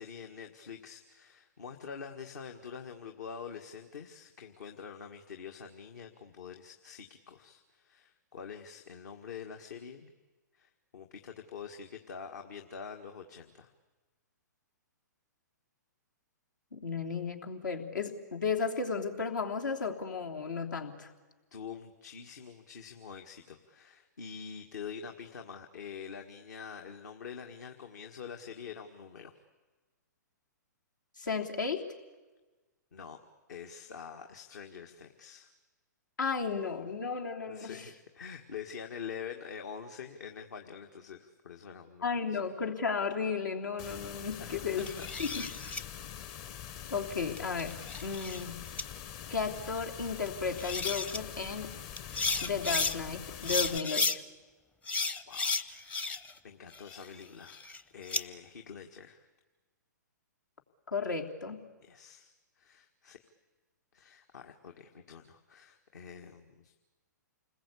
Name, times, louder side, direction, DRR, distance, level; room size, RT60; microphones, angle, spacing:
voice 1, 0.0-10.1 10.5-13.7 21.5-29.4 32.9-33.2 33.5-35.5 37.5-42.4 44.4-45.7 55.3-56.1 56.4-59.3 61.9-63.3 63.9-66.7, left 6 dB, 65° left, 4 dB, 1.8 m, -46 dB
voice 2, 16.7-21.1 31.2-31.9 36.2-37.9 42.0-44.9 45.2-45.5 46.9-47.8 48.0-48.5 49.3-51.7 52.4-54.2 60.9-61.6, left 5 dB, 80° left, 2 dB, 3.3 m, -34 dB
sound 1, 43.8-53.8, left 9 dB, 35° left, 1.0 m, -44 dB
sound 2, 44.8-45.8 47.4-48.4 48.8-48.9 50.3-50.4 50.6-51.2 52.0-53.0 53.4-54.2 54.9-56.4 56.7-58.2, left 3 dB, 15° left, 0.7 m, -33 dB
29.0 x 20.5 x 8.5 m, 1.2 s
hypercardioid pair, 125°, 10 cm